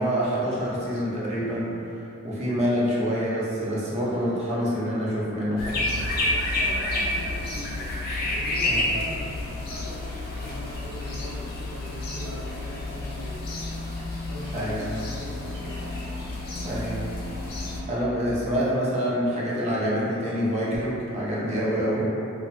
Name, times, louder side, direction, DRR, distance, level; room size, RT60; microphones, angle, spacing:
voice 1, 0.0-5.9 8.6-8.8 14.5-14.8 16.6-17.0 17.9-22.1, equal, 30° right, -7 dB, 0.5 m, -26 dB
sound 1, 5.6-17.8, left 2 dB, 45° left, 0.3 m, -30 dB
voice 2, 6.2-7.9 8.3-13.4 14.3-16.0, equal, 75° right, -10 dB, 0.9 m, -40 dB
2.7 x 2.1 x 2.5 m, 2.8 s
head